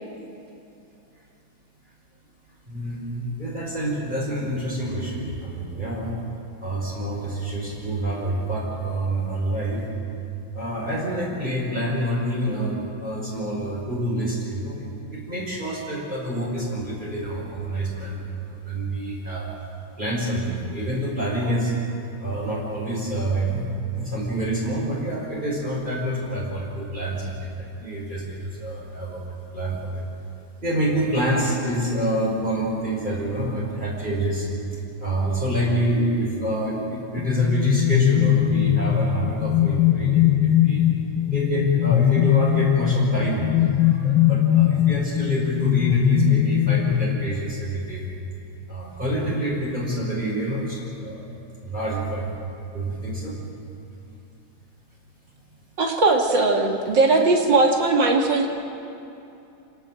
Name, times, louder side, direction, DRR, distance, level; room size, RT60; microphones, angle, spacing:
voice 1, 2.7-6.1 6.6-9.8 10.5-19.5 20.0-21.7 22.2-23.6 24.0-29.3 29.5-30.0 30.6-34.5 35.0-40.8 41.3-48.0 48.7-51.3 51.6-52.3 52.7-53.4, right 1 dB, 20° right, -5 dB, 6.0 m, -27 dB
sound 1, 37.2-47.7, left 11 dB, 80° left, 1.7 m, -20 dB
voice 2, 55.8-58.5, right 3 dB, 60° right, 1 dB, 3.0 m, -19 dB
28.0 x 18.0 x 7.8 m, 2.8 s
omnidirectional pair, 2.2 m